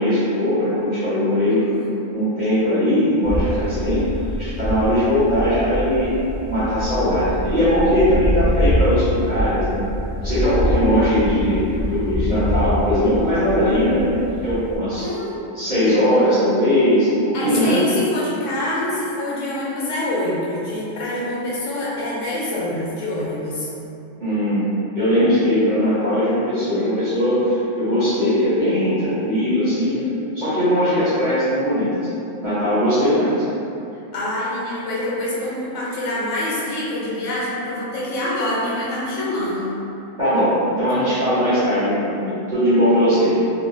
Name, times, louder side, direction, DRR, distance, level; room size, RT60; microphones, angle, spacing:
voice 1, 0.0-1.7 2.1-4.1 4.4-6.2 6.5-9.8 10.2-14.1 14.4-15.1 15.5-17.8 24.2-30.0 30.3-32.0 32.4-33.5 40.2-43.3, equal, 40° right, -14 dB, 0.9 m, -19 dB
voice 2, 1.5-2.0 15.0-15.4 17.3-23.7 34.1-39.7, left 1 dB, 70° left, -7 dB, 0.9 m, -26 dB
sound 1, 3.2-14.8, equal, 30° left, 0.5 m, -25 dB
2.9 x 2.2 x 2.5 m, 2.8 s
omnidirectional pair, 1.4 m